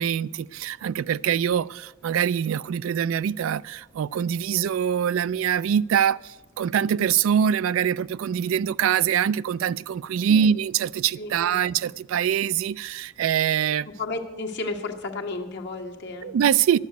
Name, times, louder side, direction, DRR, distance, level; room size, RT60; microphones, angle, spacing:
voice 1, 0.0-13.9 16.2-16.8, right 8 dB, 85° right, 0.3 m, -24 dB
voice 2, 11.2-11.6 14.0-16.3, left 3 dB, 60° left, 1.4 m, -33 dB
11.5 x 7.1 x 9.3 m
head